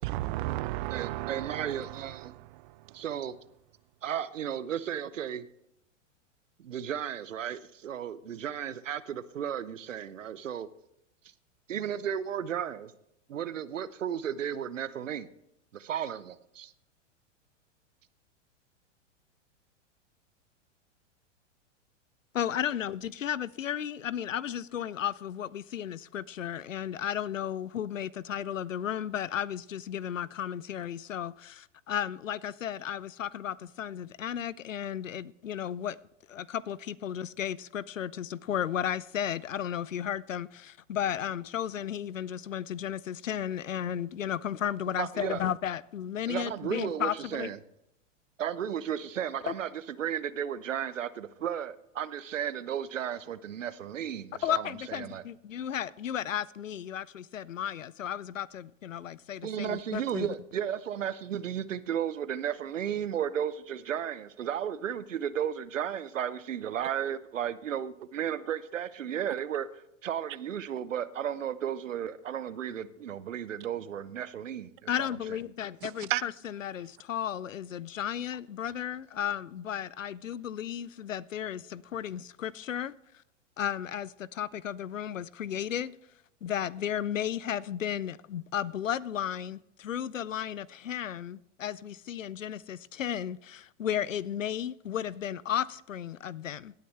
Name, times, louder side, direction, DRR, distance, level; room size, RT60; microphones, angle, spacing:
voice 1, 0.0-3.0 75.8-76.2, right 18 dB, 45° right, 0.4 m, -34 dB
voice 2, 0.9-2.3 2.9-3.4 4.0-5.5 6.6-10.7 11.7-12.9 13.3-15.3 15.7-16.7 45.0-45.4 46.3-47.6 48.4-49.7 50.0-54.6 54.9-55.2 59.4-75.1, right 9 dB, 80° right, 0.8 m, -34 dB
voice 3, 22.3-36.0 36.3-47.5 49.5-49.6 54.4-60.3 74.9-82.9 83.6-86.0 86.4-96.7, left 10 dB, 90° left, 0.5 m, -34 dB
17.5 x 9.4 x 3.3 m
hypercardioid pair, 100°, 37 cm